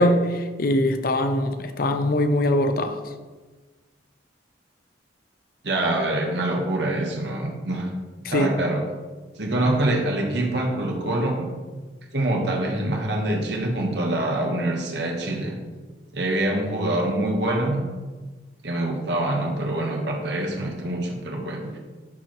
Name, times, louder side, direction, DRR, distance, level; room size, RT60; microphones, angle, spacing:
voice 1, 0.0-3.0 8.2-8.5, left 1 dB, 55° left, 8 dB, 0.6 m, -22 dB
voice 2, 5.6-7.9 8.3-8.8 9.4-11.5 12.1-15.6 16.1-17.8 18.6-21.8, right 1 dB, 75° right, 1 dB, 1.2 m, -25 dB
11.5 x 4.7 x 3.0 m, 1.3 s
head